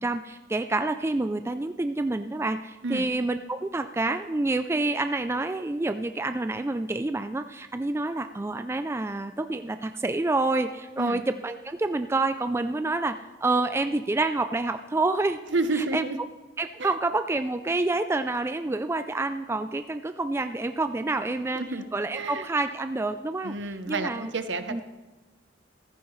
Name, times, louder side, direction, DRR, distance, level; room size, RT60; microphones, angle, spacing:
voice 1, 0.0-15.4 15.7-16.0 16.6-24.3 24.7-24.8, right 2 dB, 15° right, 9 dB, 0.3 m, -28 dB
voice 2, 15.5-16.2 16.8-16.9 21.5-21.9 22.1-22.5 23.4-24.8, right 3 dB, 70° right, 10 dB, 0.8 m, -30 dB
15.0 x 14.0 x 3.2 m, 1.2 s
head